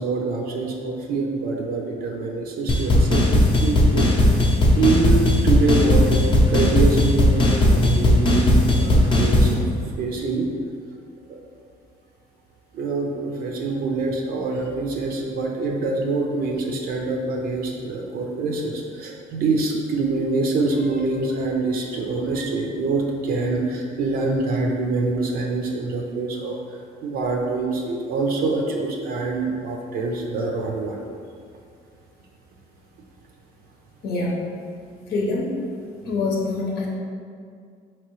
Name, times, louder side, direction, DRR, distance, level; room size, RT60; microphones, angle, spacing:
voice 1, 0.0-4.4 4.8-6.2 6.5-9.6 10.0-10.5 11.3-11.4 12.7-31.1, right 3 dB, 60° right, 1 dB, 0.5 m, -25 dB
sound 1, 2.7-9.5, left 1 dB, 30° left, 0.6 m, -17 dB
voice 2, 34.0-34.4 35.1-35.5 36.1-36.9, left 3 dB, 75° left, -3 dB, 0.8 m, -25 dB
4.3 x 3.0 x 3.0 m, 2.2 s
cardioid pair, 110°, 17 cm